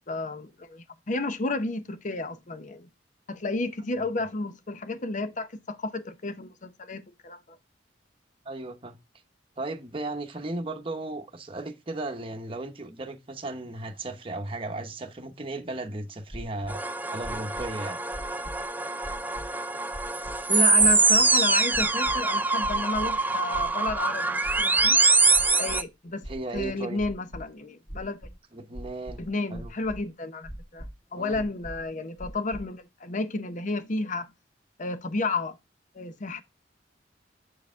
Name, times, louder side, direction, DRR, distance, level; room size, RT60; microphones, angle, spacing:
voice 1, 0.1-2.9 3.3-7.4 20.5-25.0 25.6-26.2 26.5-28.2 29.2-34.3 34.8-35.6 35.9-36.4, left 3 dB, 45° left, 0.7 m, -31 dB
voice 2, 8.4-9.0 9.6-16.8 17.1-18.0 26.3-27.0 28.5-29.2 29.5-29.7 31.2-31.4, right 2 dB, 30° right, 0.9 m, -35 dB
sound 1, 16.3-16.7 17.2-17.7 18.1-18.7 19.0-19.5 19.9-20.4 20.8-21.2 21.7-22.2 22.6-23.1 23.5-24.0 24.4-25.0 25.3-25.8 26.2-27.4 27.9-28.3 28.7-29.3 29.5-30.0 30.4-30.9 31.3-31.8 32.2-32.6, equal, 20° left, 1.8 m, -40 dB
sound 2, 16.7-25.8, right 3 dB, 10° right, 0.4 m, -24 dB
8.1 x 4.6 x 3.6 m
head